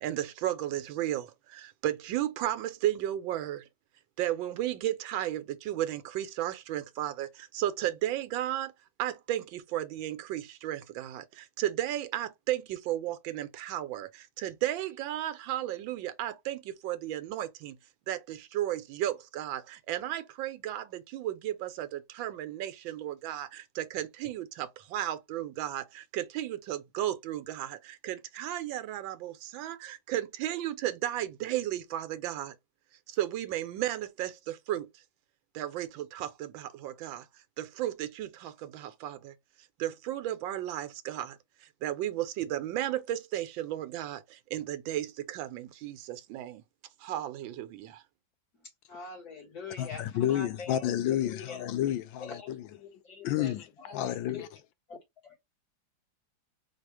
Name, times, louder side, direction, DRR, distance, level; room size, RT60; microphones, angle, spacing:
voice 1, 0.0-3.7 4.2-8.7 9.0-17.8 18.1-32.6 33.1-34.9 35.5-37.3 37.6-39.3 39.8-46.6 47.0-48.0, right 13 dB, 85° right, 1.4 m, -34 dB
voice 2, 48.6-51.7 52.2-54.0 54.3-54.5, left 5 dB, 55° left, 2.1 m, -44 dB
voice 3, 49.8-52.7 53.2-53.7 53.9-54.5, left 12 dB, 90° left, 1.4 m, -30 dB
4.3 x 2.4 x 4.7 m
omnidirectional pair, 2.0 m